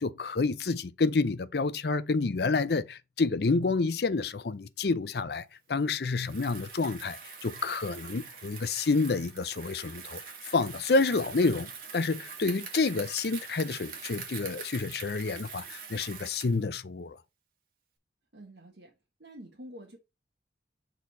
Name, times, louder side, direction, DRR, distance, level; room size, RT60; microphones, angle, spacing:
voice 1, 0.0-17.2, left 3 dB, 60° left, 0.5 m, -29 dB
Bicycle, 6.1-16.6, right 6 dB, 50° right, 1.8 m, -44 dB
voice 2, 18.3-18.9 19.2-20.0, equal, 75° right, 1.4 m, -47 dB
6.5 x 4.0 x 4.1 m
head